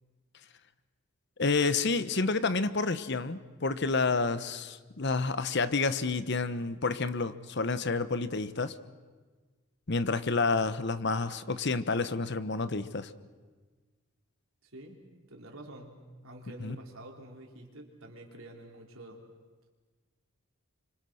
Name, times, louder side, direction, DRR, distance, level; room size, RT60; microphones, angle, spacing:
voice 1, 1.4-8.7 9.9-13.1 16.6-16.8, left 3 dB, 55° left, 1.0 m, -29 dB
voice 2, 14.6-15.0 15.3-19.2, right 1 dB, 70° right, 4.1 m, -48 dB
29.0 x 25.5 x 6.4 m
head